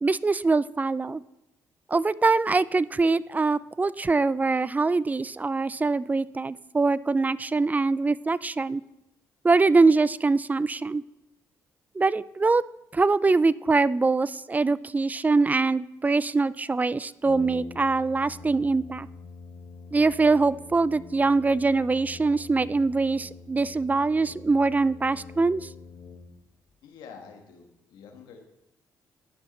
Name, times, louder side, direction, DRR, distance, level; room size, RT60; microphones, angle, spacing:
voice 1, 0.0-1.2 1.9-8.8 9.4-11.0 12.0-12.6 12.9-19.1 19.9-25.7, right 3 dB, 20° right, 19 dB, 0.3 m, -23 dB
Brass instrument, 17.2-26.7, left 4 dB, 45° left, 1.3 m, -45 dB
voice 2, 26.8-28.4, left 6 dB, 80° left, 3 dB, 1.4 m, -47 dB
11.0 x 6.2 x 4.3 m, 0.89 s
supercardioid pair, 60°, 7 cm